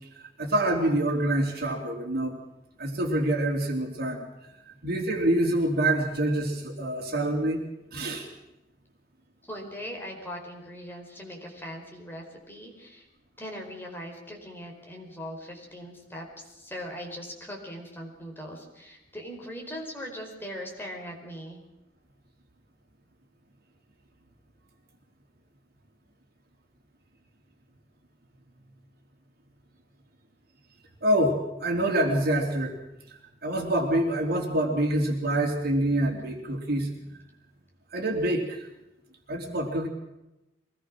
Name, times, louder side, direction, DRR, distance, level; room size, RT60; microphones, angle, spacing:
voice 1, 0.4-2.4 2.8-4.3 4.7-7.6 7.9-8.3 31.0-32.8 33.4-36.9 37.9-38.7 39.3-39.9, right 1 dB, 55° right, 2 dB, 3.8 m, -26 dB
voice 2, 9.4-13.1 13.4-21.6, equal, 10° left, 0 dB, 4.7 m, -40 dB
24.0 x 19.5 x 6.3 m, 0.95 s
head